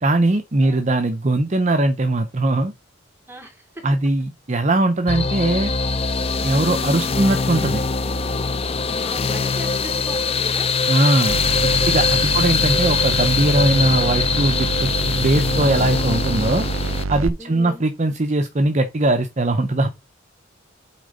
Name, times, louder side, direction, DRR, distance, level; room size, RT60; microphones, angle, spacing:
voice 1, 0.0-2.7 3.8-5.7 6.4-7.8 10.9-14.9 15.2-16.7 17.1-19.9, right 2 dB, 35° right, 0.6 m, -20 dB
voice 2, 3.3-3.8 6.5-6.9 9.0-10.8 12.2-12.9 17.4-17.8, right 1 dB, 10° right, 3.2 m, -39 dB
sound 1, 5.1-17.0, left 5 dB, 30° left, 0.5 m, -22 dB
sound 2, 11.3-17.3, right 3 dB, 80° right, 0.7 m, -26 dB
8.4 x 3.6 x 5.3 m
head